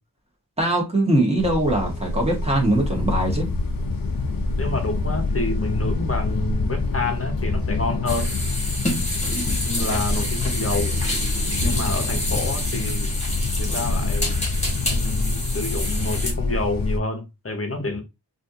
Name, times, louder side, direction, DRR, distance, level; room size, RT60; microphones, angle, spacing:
voice 1, 0.6-3.5, right 1 dB, 15° right, 1.4 m, -21 dB
sound 1, 1.4-17.0, left 3 dB, 60° left, 0.6 m, -26 dB
voice 2, 4.6-8.3 9.6-11.0 11.6-13.1 13.6-14.4 14.9-18.0, left 2 dB, 35° left, 0.9 m, -28 dB
sound 2, 8.1-16.3, left 1 dB, 15° left, 1.5 m, -29 dB
3.3 x 2.6 x 2.7 m
wide cardioid pair, 55°, 39 cm